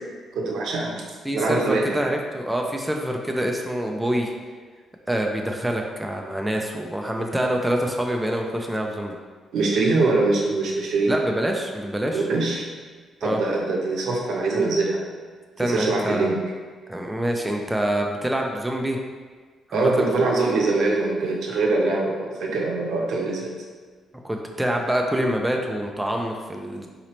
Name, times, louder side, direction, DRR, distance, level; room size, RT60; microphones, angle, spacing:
voice 1, 0.4-1.0 1.3-2.0 9.5-11.1 12.1-12.7 13.2-15.0 15.6-16.4 19.7-23.5, right 3 dB, 75° right, -1 dB, 0.7 m, -23 dB
voice 2, 1.2-4.3 5.1-9.2 11.1-12.3 13.2-13.4 15.6-16.3 16.9-19.0 19.7-20.1 20.5-20.6 24.2-26.9, right 1 dB, 5° right, 1 dB, 0.4 m, -26 dB
4.0 x 2.9 x 3.0 m, 1.5 s
cardioid pair, 90°, 0 cm